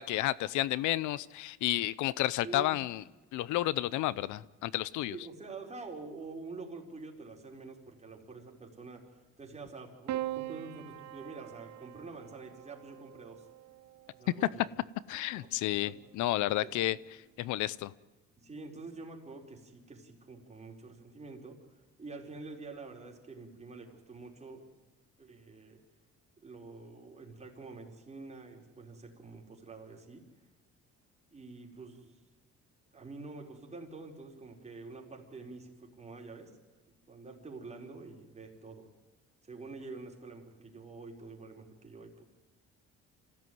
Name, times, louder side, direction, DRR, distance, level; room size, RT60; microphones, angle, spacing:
voice 1, 0.0-3.0 3.3-5.2 15.1-17.0 17.4-17.9, left 15 dB, 90° left, 20 dB, 0.7 m, -31 dB
voice 2, 2.4-2.8 5.0-13.5 14.1-14.7 15.4-15.9 16.6-16.9 18.4-24.7 25.2-25.8 26.4-30.2 31.3-32.2 32.9-36.5 36.9-38.8 39.4-42.2, right 3 dB, 25° right, 0 dB, 4.7 m, -47 dB
Piano, 10.1-14.5 15.7-16.4, right 14 dB, 70° right, 1.0 m, -42 dB
26.0 x 16.0 x 9.5 m, 1.2 s
cardioid pair, 110°, 29 cm